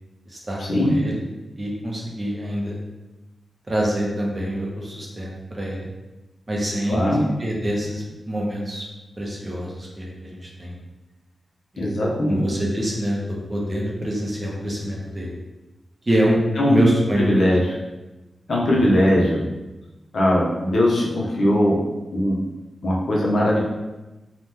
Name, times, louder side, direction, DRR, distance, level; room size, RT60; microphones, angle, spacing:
voice 1, 0.3-1.2 1.6-2.8 3.7-5.9 6.5-8.8 9.2-10.8 11.7-11.9 12.2-15.3 16.1-17.5 18.7-18.9, equal, 25° right, -3 dB, 0.6 m, -25 dB
voice 2, 6.9-7.2 11.8-12.4 16.6-16.8 17.2-17.6 18.5-19.4 20.1-21.8 22.1-22.4 22.8-23.6, left 1 dB, 60° left, -4 dB, 0.7 m, -19 dB
2.8 x 2.1 x 3.4 m, 1.1 s
wide cardioid pair, 160°, 0 cm